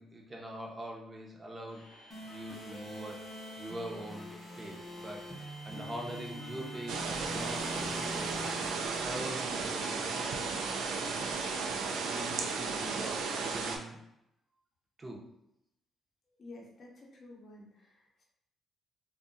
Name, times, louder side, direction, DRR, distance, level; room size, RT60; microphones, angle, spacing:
voice 1, 0.0-1.9 2.2-3.2 3.6-4.3 4.6-8.5 8.9-10.8 11.8-14.0 15.0-15.2, right 1 dB, 25° right, -1 dB, 0.6 m, -44 dB
sound 1, 1.7-11.7, equal, 90° left, 0.6 m, -52 dB
sound 2, 2.1-10.1, left 1 dB, 5° left, 0.7 m, -45 dB
sound 3, 6.9-13.8, right 4 dB, 85° right, 0.3 m, -34 dB
voice 2, 16.4-18.2, left 2 dB, 50° left, -2 dB, 0.7 m, -51 dB
2.6 x 2.2 x 2.5 m, 0.81 s
cardioid pair, 90°, 0 cm